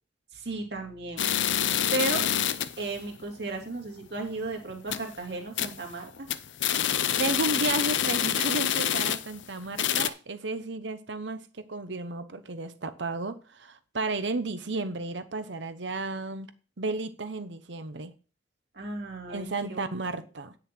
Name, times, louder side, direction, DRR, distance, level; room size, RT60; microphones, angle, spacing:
voice 1, 0.3-1.5 1.9-2.2 2.8-6.3 18.7-19.8, right 2 dB, 65° right, 2.6 m, -34 dB
sound 1, 1.2-2.8 3.2-3.3 3.6-3.7 4.2-4.4 4.7-5.2 5.6-5.9 6.2-9.4 9.7-10.1, left 10 dB, 90° left, 0.6 m, -27 dB
voice 2, 7.2-16.5 16.8-18.1 19.3-20.5, right 3 dB, 85° right, 1.0 m, -33 dB
9.7 x 6.5 x 4.5 m
head